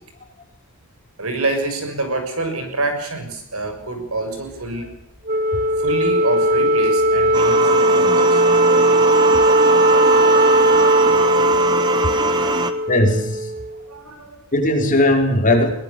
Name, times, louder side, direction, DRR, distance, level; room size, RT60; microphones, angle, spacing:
voice 1, 1.2-4.9 5.5-8.5 10.7-10.9 11.8-12.9 13.9-14.4, right 2 dB, 75° right, 7 dB, 6.7 m, -27 dB
Wind instrument woodwind instrument, 5.3-13.8, right 1 dB, 45° right, 2.0 m, -17 dB
sound 1, 7.3-12.7, right 3 dB, 20° right, 1.7 m, -23 dB
voice 2, 12.9-13.5 14.5-15.7, left 1 dB, 40° left, 3 dB, 5.0 m, -17 dB
23.0 x 18.5 x 7.0 m, 0.77 s
head